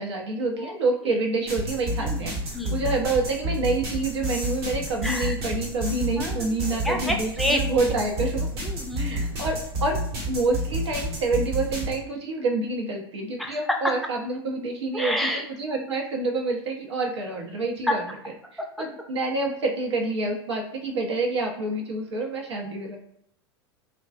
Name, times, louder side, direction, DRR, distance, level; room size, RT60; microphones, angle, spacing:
voice 1, 0.0-2.4 2.7-8.5 9.0-10.0 10.3-18.2 18.8-23.0, right 3 dB, 85° right, 1 dB, 0.7 m, -27 dB
sound 1, 1.5-11.9, right 1 dB, 65° right, 1.0 m, -30 dB
voice 2, 5.0-5.4 6.2-6.5 6.8-7.6 8.6-9.3 13.4-13.6 14.9-15.5 17.9-18.0, left 1 dB, ahead, 1 dB, 0.4 m, -28 dB
2.4 x 2.1 x 2.3 m, 0.73 s
hypercardioid pair, 95°, 14 cm